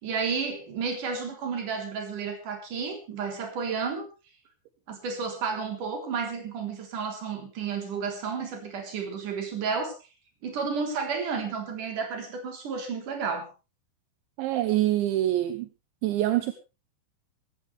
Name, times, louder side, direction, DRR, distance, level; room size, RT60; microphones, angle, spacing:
voice 1, 0.0-4.1 4.9-9.9 10.4-13.5, right 5 dB, 45° right, 4 dB, 4.8 m, -32 dB
voice 2, 14.4-15.7 16.0-16.5, right 14 dB, 75° right, 10 dB, 3.1 m, -25 dB
19.5 x 15.5 x 3.4 m, 0.30 s
omnidirectional pair, 5.7 m